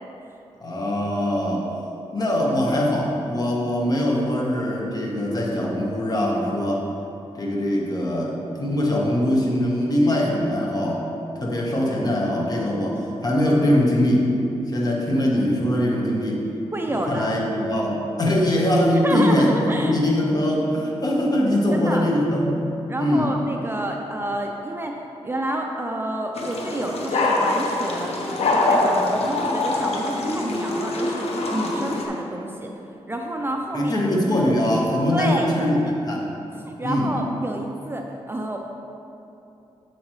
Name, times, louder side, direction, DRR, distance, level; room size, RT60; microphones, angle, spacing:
voice 1, 0.6-1.7 2.1-6.8 7.4-11.1 11.4-14.3 14.7-16.5 16.9-22.6 23.0-23.3 33.7-35.8 36.0-36.3 36.8-37.1, left 1 dB, 40° left, -2 dB, 1.3 m, -22 dB
voice 2, 16.7-17.3 19.0-20.0 21.7-22.1 22.9-28.2 28.5-32.7 33.1-34.0 35.1-35.5 35.8-35.9 36.6-38.6, right 1 dB, 20° right, 1 dB, 0.5 m, -29 dB
sound 1, 26.3-32.1, left 2 dB, 75° left, 0.9 m, -24 dB
7.6 x 7.1 x 3.2 m, 2.8 s
cardioid pair, 90°, 11 cm